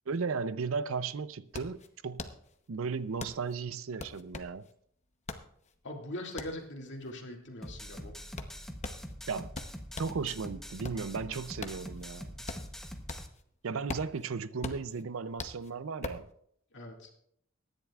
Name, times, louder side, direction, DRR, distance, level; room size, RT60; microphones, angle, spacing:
voice 1, 0.1-2.3 2.7-4.6 9.3-9.5 10.0-12.3 13.6-16.3, right 5 dB, 70° right, 0.5 m, -35 dB
sound 1, 1.1-10.2 10.6-13.5 13.7-16.3, left 3 dB, 35° left, 0.9 m, -43 dB
voice 2, 5.8-8.1 16.7-17.1, left 1 dB, 60° left, 2.3 m, -41 dB
sound 2, 7.6-13.3, equal, ahead, 0.8 m, -44 dB
24.0 x 10.5 x 2.4 m
head